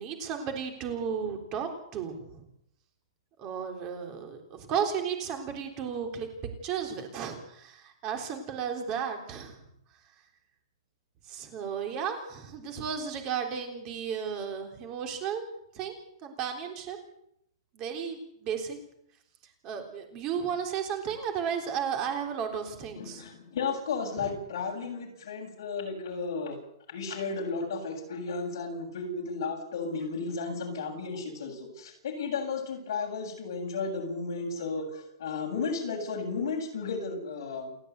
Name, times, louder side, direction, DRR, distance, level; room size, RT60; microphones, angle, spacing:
voice 1, 0.0-2.4 3.4-6.3 6.6-9.6 11.3-15.4 15.7-15.9 16.2-17.0 17.7-18.8 19.6-23.2 24.2-24.3, right 7 dB, 25° right, 5 dB, 3.5 m, -34 dB
voice 2, 23.0-26.6 26.9-37.8, left 4 dB, 55° left, 1 dB, 7.6 m, -34 dB
29.0 x 10.0 x 9.4 m, 0.74 s
hypercardioid pair, 175°, 2 cm